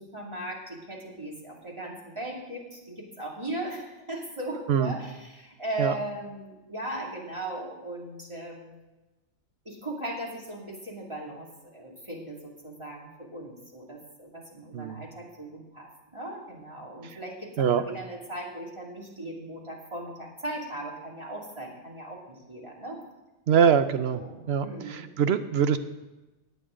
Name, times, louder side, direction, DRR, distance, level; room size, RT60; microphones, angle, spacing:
voice 1, 0.0-8.8 9.6-23.0 24.1-24.4 24.6-25.1, right 1 dB, 25° right, -3 dB, 2.5 m, -38 dB
voice 2, 14.7-15.0 17.6-17.8 23.5-24.2 24.5-25.8, right 7 dB, 65° right, 11 dB, 0.9 m, -23 dB
16.5 x 9.5 x 3.8 m, 1.1 s
omnidirectional pair, 1.2 m